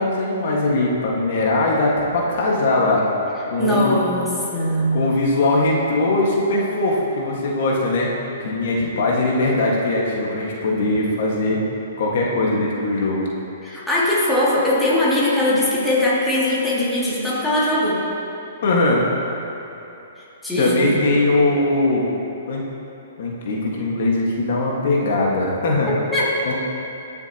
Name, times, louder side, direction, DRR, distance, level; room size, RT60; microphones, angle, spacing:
voice 1, 0.0-3.0 3.5-4.0 4.9-8.1 8.4-11.6 12.0-13.3 18.6-19.0 20.6-22.1 22.5-22.6 23.2-25.9 26.4-26.5, left 2 dB, 60° left, -3 dB, 1.7 m, -20 dB
voice 2, 3.6-5.0 13.6-18.0 20.2-21.1 25.8-26.3, left 1 dB, 5° left, -9 dB, 2.5 m, -20 dB
20.5 x 7.0 x 2.9 m, 3.0 s
hypercardioid pair, 145°, 0 cm